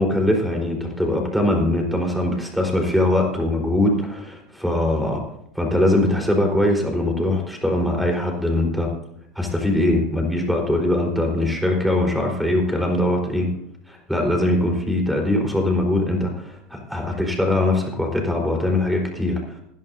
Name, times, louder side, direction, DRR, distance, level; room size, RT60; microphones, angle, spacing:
voice 1, 0.0-5.2 5.5-8.9 9.4-13.5 13.9-19.6, left 1 dB, ahead, 1 dB, 4.2 m, -21 dB
19.5 x 11.0 x 2.7 m, 0.77 s
hypercardioid pair, 90°, 0 cm